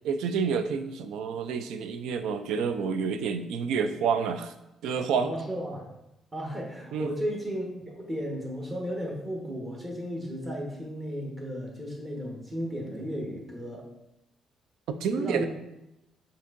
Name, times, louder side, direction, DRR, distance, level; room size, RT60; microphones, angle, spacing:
voice 1, 0.0-4.5 4.8-5.3 6.9-7.1 15.0-15.5, right 6 dB, 85° right, 9 dB, 0.3 m, -28 dB
voice 2, 5.2-5.9 6.3-7.7 8.0-13.8 15.2-15.5, equal, 25° right, -1 dB, 1.2 m, -34 dB
6.3 x 2.6 x 2.5 m, 0.92 s
cardioid pair, 90°, 0 cm